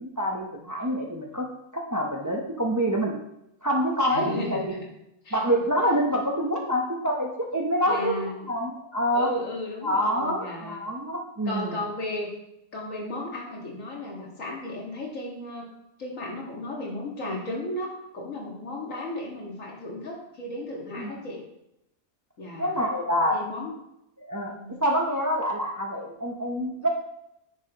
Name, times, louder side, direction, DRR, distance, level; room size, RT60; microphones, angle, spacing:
voice 1, 0.0-1.5 1.7-3.2 3.6-4.8 5.3-9.3 9.8-11.8 21.0-21.2 22.6-23.4 24.3-26.9, equal, 20° right, 0 dB, 0.5 m, -26 dB
voice 2, 4.1-4.9 5.2-5.4 7.9-8.4 9.1-10.8 11.5-12.3 12.7-15.7 16.0-17.9 18.1-21.4 22.4-22.7 23.3-23.7 24.5-24.7, left 1 dB, 65° left, -2 dB, 2.1 m, -34 dB
9.6 x 5.9 x 2.9 m, 0.84 s
omnidirectional pair, 1.5 m